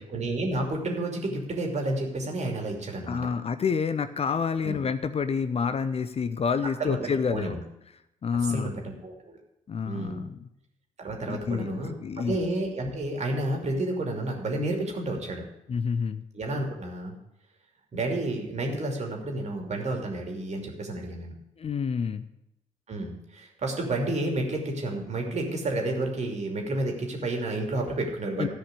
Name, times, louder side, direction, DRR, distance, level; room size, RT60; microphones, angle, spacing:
voice 1, 0.0-3.2 4.6-4.8 6.8-7.0 7.3-7.6 8.5-9.3 9.9-10.2 11.0-15.4 16.3-17.1 17.9-21.3 22.9-28.5, right 2 dB, 40° right, 1 dB, 2.7 m, -30 dB
voice 2, 3.1-7.6 8.2-8.7 9.7-10.5 11.2-11.7 12.0-12.4 15.7-16.2 21.6-22.2 28.4-28.5, left 6 dB, 35° left, 12 dB, 0.7 m, -28 dB
14.5 x 5.2 x 8.2 m, 0.84 s
figure-of-eight pair, 40°, 17 cm